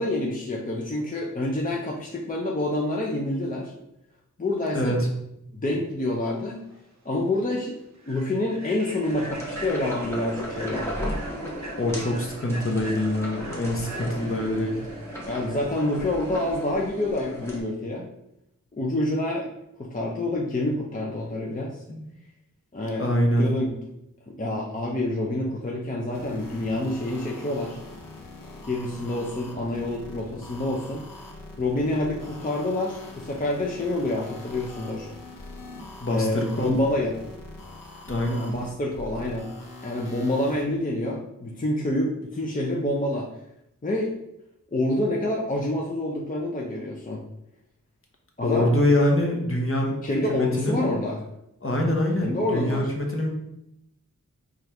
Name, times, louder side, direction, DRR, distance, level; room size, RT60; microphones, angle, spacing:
voice 1, 0.0-3.7 4.4-5.0 5.5-6.6 7.0-7.8 8.1-11.2 15.3-18.1 18.7-19.5 19.8-21.8 22.7-23.1 23.4-23.8 24.3-27.8 28.6-31.0 31.6-35.1 35.8-37.2 38.4-39.5 39.8-43.3 43.8-44.1 44.7-47.2 48.4-48.8 50.0-51.2 52.2-52.9, left 1 dB, 25° left, -2 dB, 0.5 m, -27 dB
voice 2, 4.7-5.1 11.8-14.8 21.9-22.0 23.0-23.5 36.0-36.7 38.1-38.5 48.4-50.0 50.3-50.8 51.6-53.3, left 1 dB, 40° left, 0 dB, 0.9 m, -24 dB
Human voice / Train, 6.7-6.8 7.2-7.4 7.9-15.5, right 2 dB, 55° right, 0.8 m, -43 dB
sound 1, 9.0-17.6, equal, 10° left, 1.1 m, -35 dB
sound 2, 26.1-40.7, left 2 dB, 80° left, 0.7 m, -43 dB
4.3 x 2.5 x 3.2 m, 0.82 s
wide cardioid pair, 65°, 33 cm